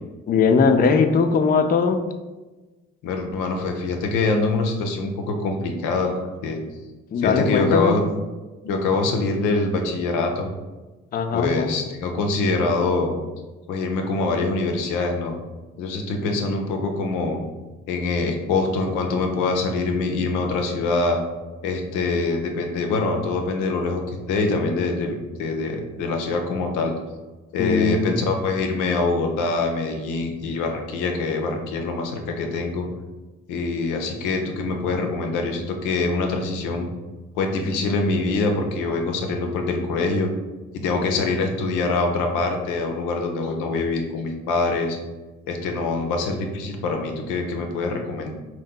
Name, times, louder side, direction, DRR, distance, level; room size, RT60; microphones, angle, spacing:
voice 1, 0.3-2.0 7.1-8.0 11.1-11.7 27.6-28.3, left 5 dB, 30° left, 7 dB, 0.4 m, -19 dB
voice 2, 3.0-6.1 6.4-6.6 7.2-8.0 8.6-10.5 11.3-13.2 13.7-15.4 15.8-17.4 17.9-21.2 21.6-26.9 27.5-32.9 33.5-36.9 37.4-40.3 40.7-45.0 45.5-48.3, left 3 dB, 85° left, 3 dB, 0.5 m, -24 dB
2.7 x 2.1 x 3.7 m, 1.2 s
supercardioid pair, 50°, 30 cm